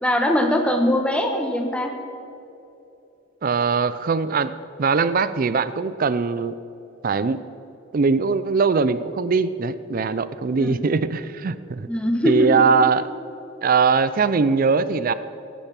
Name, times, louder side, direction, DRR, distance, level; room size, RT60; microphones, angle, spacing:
voice 1, 0.0-1.9 10.6-11.0 11.9-12.5, left 1 dB, 5° left, 3 dB, 1.2 m, -22 dB
voice 2, 3.4-4.5 4.8-6.5 7.0-7.4 7.9-11.9 12.2-13.1 13.6-15.1, right 5 dB, 45° right, 14 dB, 0.4 m, -21 dB
16.0 x 10.0 x 5.8 m, 2.8 s
head